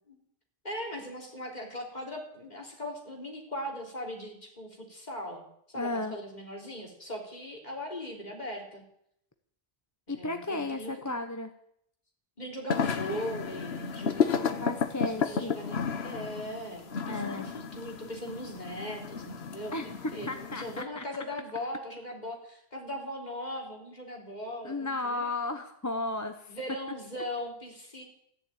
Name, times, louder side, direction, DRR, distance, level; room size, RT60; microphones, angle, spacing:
voice 1, 0.6-8.8 10.1-11.2 12.4-25.3 26.5-28.0, equal, 45° left, 0 dB, 3.7 m, -39 dB
voice 2, 5.7-6.2 10.1-11.5 14.6-15.5 17.1-17.5 19.7-21.0 24.6-26.5, left 2 dB, 20° left, 7 dB, 0.8 m, -34 dB
sound 1, 12.7-20.8, left 6 dB, 85° left, 1.3 m, -33 dB
14.0 x 11.0 x 8.9 m, 0.72 s
omnidirectional pair, 1.0 m